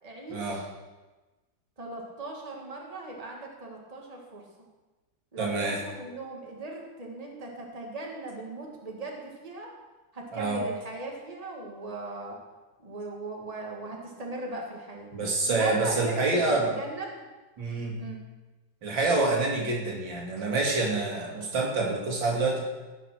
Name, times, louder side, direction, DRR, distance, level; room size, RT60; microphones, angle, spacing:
voice 1, 0.0-0.7 1.8-4.5 5.3-9.7 10.1-12.4 12.8-15.1 15.4-17.2 18.0-18.2, right 2 dB, 20° right, -1 dB, 2.0 m, -38 dB
voice 2, 5.4-5.8 10.3-10.6 15.1-16.8 17.6-18.0 18.8-22.6, right 3 dB, 85° right, -1 dB, 2.9 m, -27 dB
16.5 x 5.9 x 6.2 m, 1.2 s
omnidirectional pair, 2.0 m